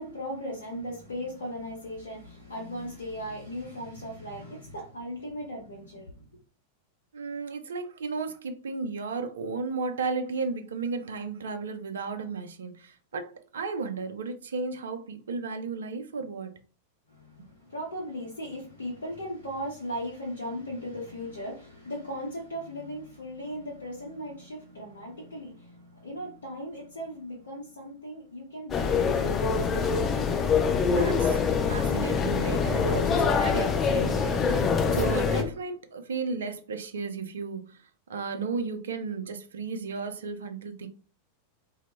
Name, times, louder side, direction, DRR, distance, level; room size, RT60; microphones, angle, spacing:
voice 1, 0.0-6.2 17.1-29.4, equal, 70° left, 0.6 m, -37 dB
voice 2, 7.1-16.6 17.4-17.5 30.9-40.9, right 4 dB, 65° right, 0.4 m, -34 dB
sound 1, 28.7-35.4, left 5 dB, 25° left, 0.7 m, -25 dB
2.1 x 2.0 x 3.1 m
figure-of-eight pair, 90°, 0 cm